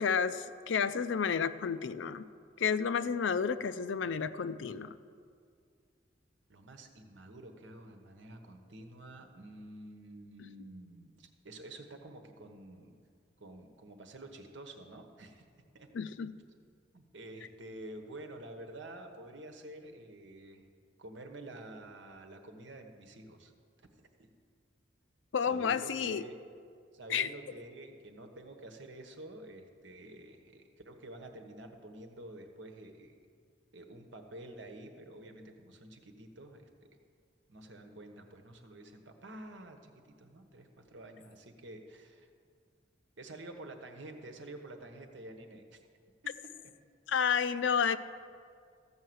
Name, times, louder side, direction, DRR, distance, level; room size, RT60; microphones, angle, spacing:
voice 1, 0.0-2.2 2.6-4.9 15.9-16.4 25.3-26.2 27.1-27.3 47.1-48.0, left 6 dB, 85° left, 13 dB, 0.5 m, -31 dB
voice 2, 6.5-13.0 13.4-15.4 15.7-15.9 16.9-20.7 21.0-23.5 23.8-23.9 24.2-24.3 25.4-26.4 26.9-33.2 33.7-36.7 37.5-42.3 43.2-45.8 46.2-46.5, right 1 dB, 85° right, 5 dB, 1.2 m, -49 dB
14.5 x 5.6 x 7.8 m, 2.2 s
head